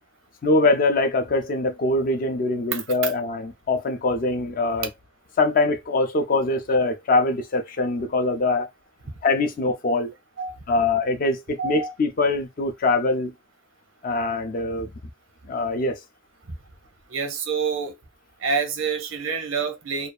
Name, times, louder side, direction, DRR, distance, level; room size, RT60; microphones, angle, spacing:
voice 1, 0.4-4.9 5.4-8.7 9.2-10.1 10.7-13.3 14.0-14.9 15.4-16.0, left 2 dB, 45° left, 0.4 m, -23 dB
voice 2, 11.6-11.9 17.1-17.9 18.4-20.1, right 5 dB, 85° right, 0.7 m, -27 dB
2.6 x 2.3 x 2.2 m
head